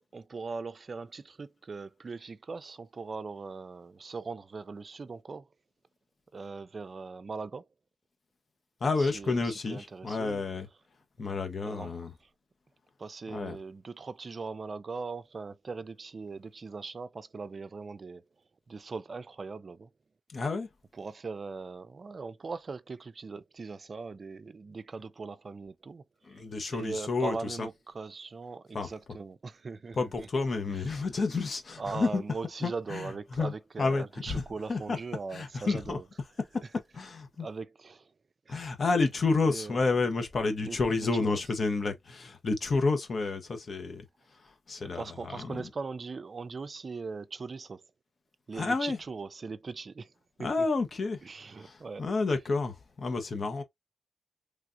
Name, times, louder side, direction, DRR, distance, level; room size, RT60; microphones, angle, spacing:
voice 1, 0.0-5.5 6.3-7.7 9.0-10.4 11.6-11.9 12.2-12.3 13.0-18.2 18.7-19.9 20.9-26.0 26.3-26.4 26.7-30.3 30.7-31.1 31.8-36.0 37.4-38.1 38.5-38.7 39.4-39.8 40.6-41.4 44.9-47.8 48.5-50.1 50.4-50.7 51.2-52.1, right 4 dB, 55° right, 0.3 m, -40 dB
voice 2, 8.8-10.7 11.2-12.1 13.3-13.6 20.3-20.7 26.3-27.6 28.7-28.9 30.0-32.2 32.6-33.5 33.8-34.4 34.7-35.0 35.3-36.0 36.9-37.5 38.5-44.0 44.7-45.6 48.5-49.0 50.4-51.2 51.6-53.6, left 3 dB, 60° left, 0.8 m, -30 dB
3.3 x 2.4 x 2.5 m
cardioid pair, 55°, 0 cm